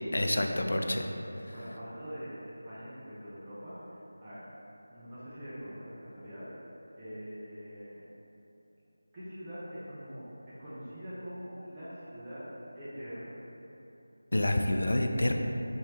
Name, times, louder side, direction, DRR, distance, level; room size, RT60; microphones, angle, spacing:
voice 1, 0.1-1.0 14.3-15.3, left 1 dB, 60° left, 4 dB, 0.3 m, -27 dB
voice 2, 1.5-3.8 4.2-4.5 4.9-6.5 7.0-8.0 9.1-10.2 10.6-12.5 12.7-13.4, equal, 15° right, -14 dB, 0.6 m, -43 dB
3.0 x 2.8 x 4.3 m, 3.0 s
figure-of-eight pair, 165°, 0 cm